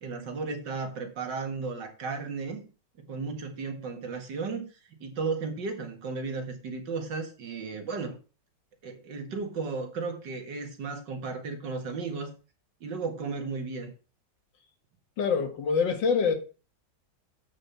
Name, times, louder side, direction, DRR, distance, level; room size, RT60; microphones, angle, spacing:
voice 1, 0.0-2.6 3.0-8.2 8.8-12.3 12.8-13.9, right 4 dB, 75° right, 2.4 m, -34 dB
voice 2, 15.2-16.3, left 5 dB, 90° left, 2.3 m, -25 dB
8.6 x 5.2 x 6.6 m
omnidirectional pair, 1.9 m